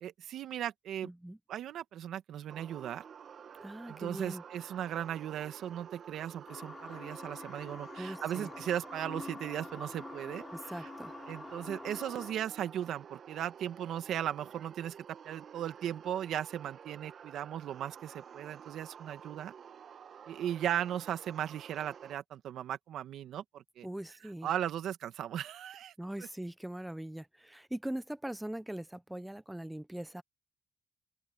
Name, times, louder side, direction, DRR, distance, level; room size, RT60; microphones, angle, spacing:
voice 1, 0.0-1.1 1.5-3.0 3.9-10.7 11.3-15.0 15.2-19.5 20.3-23.9 24.4-25.9, right 10 dB, 75° right, 1.7 m, -37 dB
voice 2, 1.0-1.4 3.6-4.4 8.0-8.5 10.5-11.1 23.8-24.5 26.0-30.2, right 1 dB, 5° right, 0.7 m, -41 dB
sound 1, 2.5-22.2, right 7 dB, 55° right, 1.1 m, -51 dB
sound 2, 6.5-12.3, left 3 dB, 25° left, 5.8 m, -46 dB
open air
cardioid pair, 90°, 0 cm